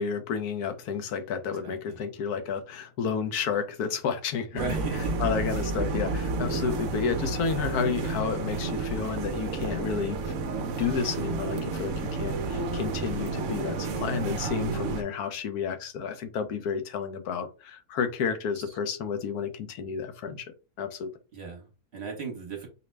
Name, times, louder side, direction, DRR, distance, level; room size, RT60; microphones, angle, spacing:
voice 1, 0.0-10.3 10.8-20.5 20.8-21.1, left 6 dB, 75° left, 1.1 m, -31 dB
voice 2, 1.6-1.9 4.5-5.4 5.8-5.9 12.8-13.1 18.7-18.8 21.3-22.7, right 4 dB, 45° right, 1.1 m, -38 dB
sound 1, 4.6-15.0, right 3 dB, 65° right, 0.8 m, -31 dB
4.9 x 2.1 x 3.2 m
omnidirectional pair, 1.7 m